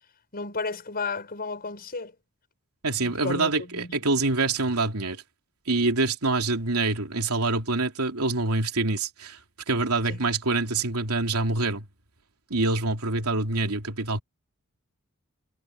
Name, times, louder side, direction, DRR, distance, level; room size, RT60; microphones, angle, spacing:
voice 1, 0.3-2.1 3.0-4.0 10.1-10.2, left 4 dB, 45° left, 5.6 m, -33 dB
voice 2, 2.8-5.2 5.7-9.4 9.7-11.9 12.5-14.2, right 3 dB, 85° right, 3.0 m, -25 dB
head